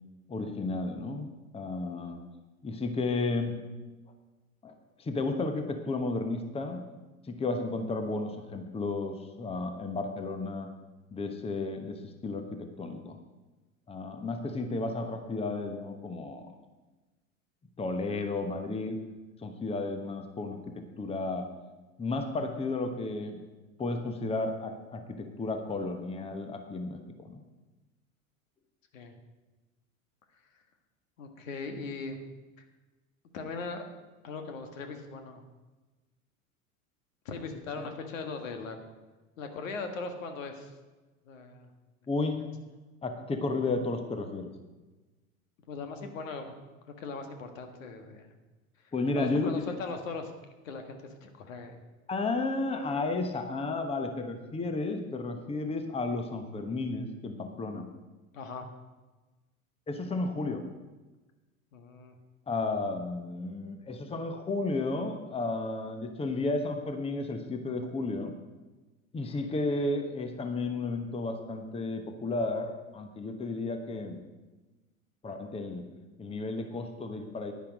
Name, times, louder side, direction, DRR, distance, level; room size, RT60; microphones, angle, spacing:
voice 1, 0.3-1.3 1.5-2.2 2.6-3.6 4.6-4.7 5.0-6.8 7.2-10.7 11.1-13.2 13.9-16.6 17.8-19.0 19.4-21.5 22.0-23.4 23.8-27.4 37.8-37.9 42.1-42.4 43.0-44.5 48.9-49.8 52.1-57.8 59.9-60.7 62.5-68.4 69.1-74.2 75.2-75.8 76.2-77.5, left 3 dB, 15° left, 6 dB, 1.1 m, -33 dB
voice 2, 31.2-32.2 33.3-33.8 34.2-35.4 37.2-38.8 39.4-40.7 41.3-41.7 42.4-42.5 45.7-46.5 47.0-48.3 49.1-50.3 50.6-51.8 58.3-58.7 61.7-62.1, left 4 dB, 65° left, 6 dB, 1.7 m, -39 dB
10.5 x 10.5 x 5.1 m, 1.2 s
figure-of-eight pair, 85°, 42 cm